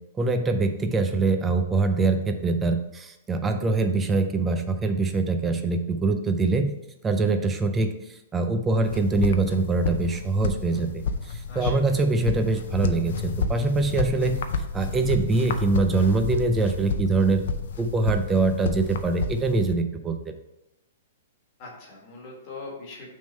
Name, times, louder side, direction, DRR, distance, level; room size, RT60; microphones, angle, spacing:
voice 1, 0.2-6.7 7.0-7.9 8.3-14.4 14.7-17.4 17.8-20.2, right 3 dB, 10° right, 7 dB, 0.4 m, -23 dB
Footsteps on Grass.L, 8.8-19.7, left 5 dB, 55° left, 0.5 m, -30 dB
voice 2, 11.5-12.0 21.6-23.1, left 3 dB, 30° left, -1 dB, 1.6 m, -41 dB
6.3 x 3.6 x 5.4 m, 0.88 s
hypercardioid pair, 180°, 0 cm